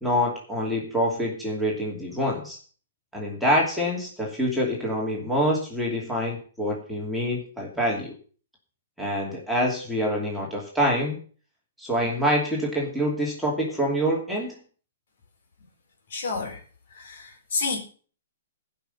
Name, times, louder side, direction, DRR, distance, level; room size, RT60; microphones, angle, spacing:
voice 1, 0.0-2.6 3.1-8.1 9.0-11.2 11.8-14.5, equal, ahead, -4 dB, 2.8 m, -26 dB
voice 2, 16.1-16.6 17.0-17.8, left 4 dB, 60° left, 3 dB, 4.1 m, -29 dB
17.5 x 5.8 x 6.8 m, 0.42 s
hypercardioid pair, 165°, 0 cm